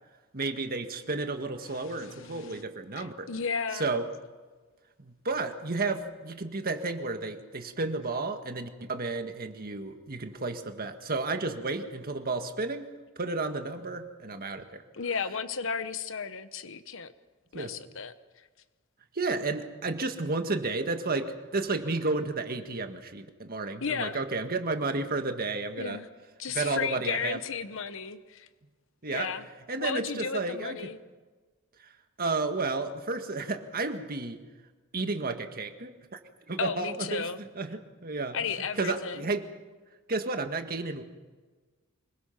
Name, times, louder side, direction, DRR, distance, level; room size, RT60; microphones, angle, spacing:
voice 1, 0.3-3.3 3.7-4.1 5.0-14.8 17.5-17.8 19.1-26.0 26.5-27.4 29.0-29.3 29.7-30.8 31.8-31.9 32.2-34.4 34.9-36.2 36.5-38.4 38.8-39.5 40.1-41.0, right 3 dB, 45° right, 6 dB, 1.7 m, -32 dB
voice 2, 1.6-2.6 3.0-4.0 14.9-17.1 17.5-18.1 23.8-24.2 25.8-26.1 26.4-28.5 29.1-29.5 29.8-31.0 36.6-37.4 38.3-39.2, left 5 dB, 65° left, 11 dB, 1.1 m, -34 dB
24.5 x 21.5 x 5.9 m, 1.3 s
head